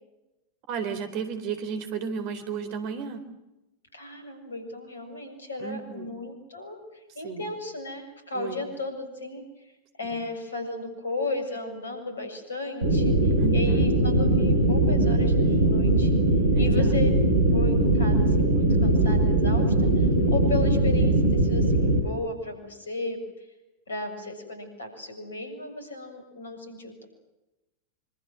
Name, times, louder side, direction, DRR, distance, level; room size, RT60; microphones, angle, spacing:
voice 1, 0.7-3.2 5.6-6.2 7.2-7.5 8.3-8.6 10.0-10.2 13.4-13.9 16.5-17.0, right 6 dB, 45° right, 10 dB, 3.9 m, -34 dB
voice 2, 3.9-9.7 10.0-16.1 16.6-17.1 17.5-23.5 23.9-27.0, left 2 dB, 70° left, 7 dB, 7.3 m, -35 dB
sound 1, 12.8-22.0, right 2 dB, 70° right, 3.6 m, -21 dB
26.5 x 25.5 x 7.7 m, 0.99 s
figure-of-eight pair, 90°, 0 cm